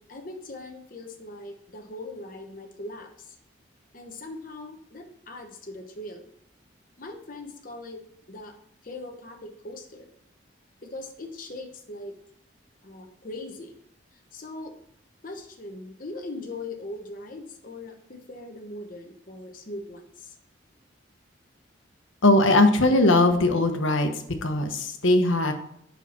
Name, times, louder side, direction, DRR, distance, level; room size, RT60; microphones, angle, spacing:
voice 1, 0.0-3.4 3.9-6.2 7.0-8.0 8.3-8.5 8.8-10.1 10.8-12.1 12.8-13.7 14.3-14.7 15.2-20.3, left 2 dB, 45° left, 3 dB, 1.0 m, -40 dB
voice 2, 22.2-24.1 24.4-25.5, left 2 dB, 80° left, 6 dB, 1.1 m, -20 dB
6.9 x 5.8 x 4.3 m, 0.72 s
head